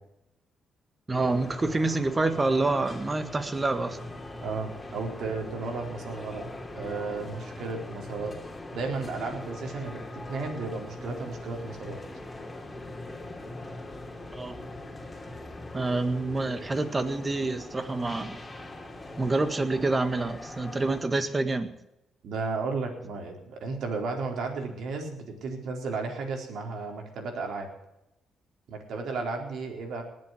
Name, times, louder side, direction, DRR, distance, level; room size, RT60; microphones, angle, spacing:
sound 1, 1.1-21.0, left 2 dB, 15° left, 2.9 m, -41 dB
voice 1, 1.1-4.0 14.3-14.6 15.7-18.4 19.2-21.7, right 2 dB, 25° right, 9 dB, 1.8 m, -27 dB
voice 2, 4.4-6.5 6.7-8.3 8.7-12.0 22.2-27.7 28.7-30.0, right 4 dB, 70° right, 2 dB, 4.3 m, -34 dB
19.5 x 7.7 x 7.9 m, 0.87 s
cardioid pair, 90°, 0 cm